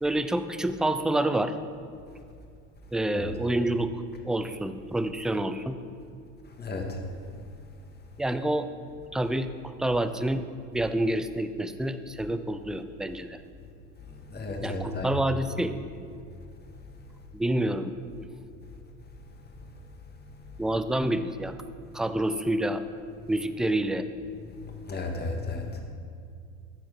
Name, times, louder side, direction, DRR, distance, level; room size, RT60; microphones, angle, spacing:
voice 1, 0.0-1.5 2.9-5.8 8.2-8.7 9.1-9.5 9.8-10.4 10.7-13.4 14.6-15.7 17.3-17.9 20.6-21.5 21.9-22.8 23.3-24.0, right 1 dB, ahead, 10 dB, 0.4 m, -28 dB
voice 2, 6.6-7.0 14.3-15.1 24.9-25.8, left 3 dB, 25° left, 2 dB, 1.8 m, -33 dB
14.0 x 4.7 x 5.9 m, 2.3 s
hypercardioid pair, 80°, 38 cm